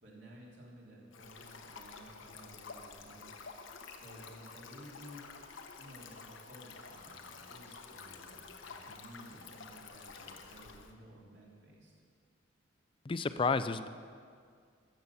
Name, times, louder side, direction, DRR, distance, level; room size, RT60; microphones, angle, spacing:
voice 1, 0.0-3.3 4.0-5.2 5.7-11.9, equal, 60° right, -4 dB, 3.0 m, -54 dB
Stream, 1.1-10.9, left 5 dB, 70° left, 1.0 m, -50 dB
voice 2, 13.1-13.9, left 4 dB, 25° left, 12 dB, 0.4 m, -31 dB
12.5 x 8.5 x 6.8 m, 2.1 s
head